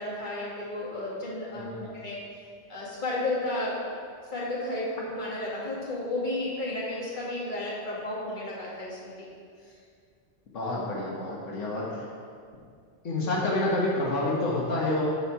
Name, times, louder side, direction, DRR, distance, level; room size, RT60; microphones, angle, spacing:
voice 1, 0.0-1.7 2.0-2.2 2.7-3.8 4.3-9.3 9.6-9.8, left 2 dB, 40° left, -7 dB, 2.1 m, -32 dB
voice 2, 1.5-1.9 10.5-12.0 13.0-15.0, left 2 dB, 90° left, -4 dB, 1.6 m, -28 dB
12.0 x 4.2 x 4.6 m, 2.2 s
omnidirectional pair, 1.2 m